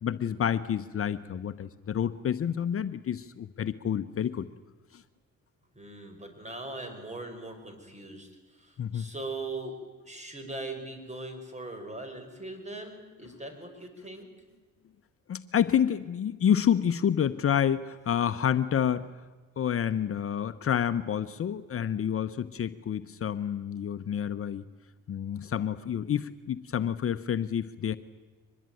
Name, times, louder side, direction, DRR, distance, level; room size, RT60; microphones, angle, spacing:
voice 1, 0.0-4.5 4.9-5.0 8.8-9.1 15.3-19.1 19.6-24.7 25.1-28.0, left 9 dB, 45° left, 11 dB, 0.9 m, -28 dB
voice 2, 5.8-9.8 10.0-14.3, right 2 dB, 25° right, 6 dB, 5.6 m, -40 dB
24.0 x 21.0 x 9.2 m, 1.3 s
cardioid pair, 90°, 30 cm